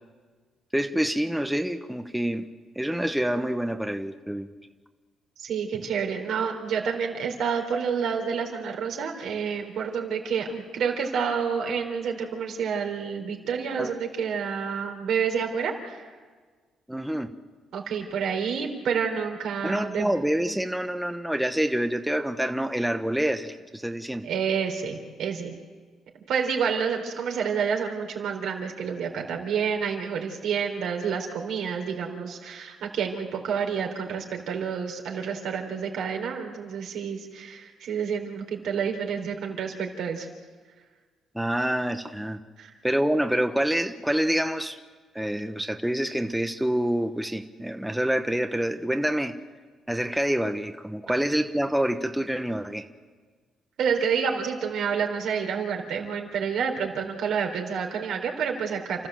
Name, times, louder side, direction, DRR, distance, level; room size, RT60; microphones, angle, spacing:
voice 1, 0.7-2.5 2.7-4.5 13.8-13.9 16.9-17.3 19.6-24.3 41.3-42.4 42.8-44.8 45.1-49.3 49.9-52.8, right 1 dB, 5° right, 7 dB, 1.1 m, -27 dB
voice 2, 5.4-16.0 17.7-20.1 24.2-25.5 26.3-40.3 42.6-42.7 53.8-59.1, right 6 dB, 75° right, 2 dB, 3.9 m, -29 dB
29.5 x 14.0 x 7.8 m, 1.5 s
cardioid pair, 90°, 0 cm